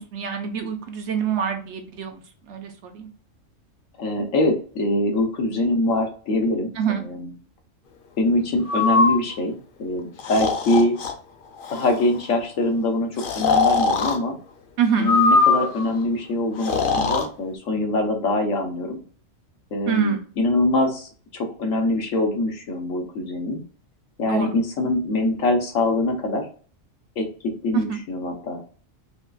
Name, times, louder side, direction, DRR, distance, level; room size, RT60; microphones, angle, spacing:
voice 1, 0.0-2.2 2.5-3.1 6.8-7.0 14.8-15.1 19.9-20.2 24.3-24.6 27.7-28.0, right 7 dB, 65° right, 6 dB, 0.9 m, -26 dB
voice 2, 4.0-6.7 7.0-7.3 8.2-9.5 9.8-11.0 11.7-14.4 15.0-19.0 19.7-23.6 24.2-26.5 27.2-28.6, left 1 dB, 75° left, 3 dB, 1.3 m, -23 dB
Breathing, 8.7-9.2 10.2-11.1 11.6-12.0 13.2-14.2 15.0-15.9 16.6-17.3, left 4 dB, 55° left, 0.7 m, -21 dB
5.1 x 2.4 x 2.3 m, 0.40 s
omnidirectional pair, 1.3 m